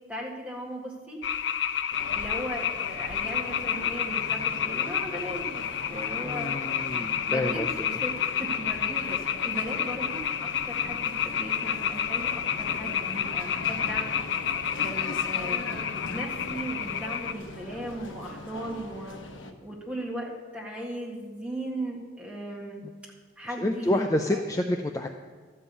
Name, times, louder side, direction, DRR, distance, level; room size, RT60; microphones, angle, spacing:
voice 1, 0.1-1.2 2.1-5.6 5.9-6.5 7.3-14.2 14.8-19.2 19.6-22.8 23.4-24.4, right 1 dB, 5° right, -3 dB, 1.9 m, -37 dB
sound 1, 1.2-17.3, left 8 dB, 70° left, 0.5 m, -30 dB
sound 2, 1.9-19.5, left 2 dB, 85° left, 1.0 m, -41 dB
voice 2, 6.2-7.7 23.6-25.1, left 1 dB, 15° left, 5 dB, 0.4 m, -28 dB
12.5 x 5.5 x 8.2 m, 1.5 s
head